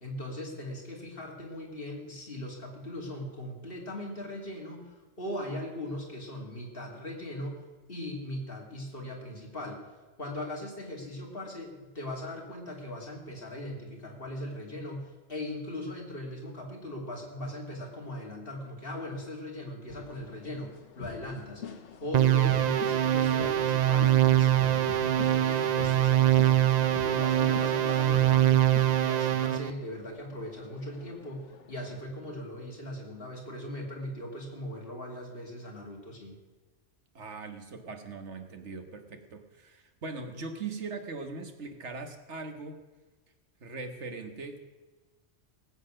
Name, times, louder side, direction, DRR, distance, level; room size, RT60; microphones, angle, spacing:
voice 1, 0.0-7.6 7.9-9.8 10.2-21.6 22.0-28.7 29.0-36.4, left 1 dB, 55° left, 0 dB, 2.9 m, -39 dB
sound 1, 19.9-32.0, left 7 dB, 80° left, 1.3 m, -45 dB
sound 2, 22.1-29.7, right 12 dB, 55° right, 0.4 m, -23 dB
voice 2, 37.2-42.8 43.6-44.6, right 4 dB, 75° right, 6 dB, 1.7 m, -40 dB
19.0 x 8.4 x 6.4 m, 1.2 s
omnidirectional pair, 1.2 m